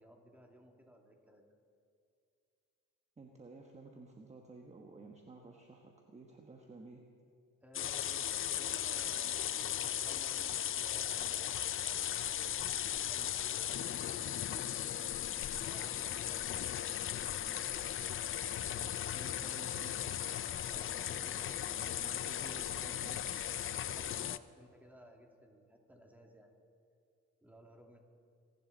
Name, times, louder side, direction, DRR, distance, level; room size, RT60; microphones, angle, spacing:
voice 1, 0.0-1.5 7.6-12.4 12.8-14.9 15.6-19.0 20.7-22.2 23.7-26.5 27.4-28.0, equal, 5° right, 1 dB, 2.4 m, -59 dB
voice 2, 3.2-7.0 19.1-20.0 21.9-23.2, right 3 dB, 20° right, 2 dB, 1.3 m, -53 dB
sound 1, 7.7-24.4, left 10 dB, 45° left, 0.5 m, -37 dB
27.0 x 11.0 x 4.0 m, 2.4 s
cardioid pair, 90°, 30 cm